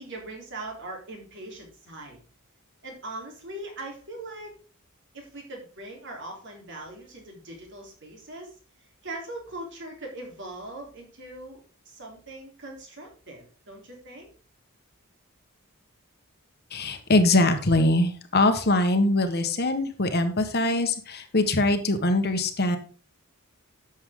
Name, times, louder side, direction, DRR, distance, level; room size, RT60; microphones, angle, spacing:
voice 1, 0.0-2.2 2.8-4.6 5.1-8.6 9.0-14.3, right 2 dB, 55° right, 1 dB, 3.6 m, -40 dB
voice 2, 16.7-22.8, left 2 dB, 45° left, 7 dB, 1.3 m, -22 dB
11.0 x 7.3 x 3.7 m, 0.37 s
head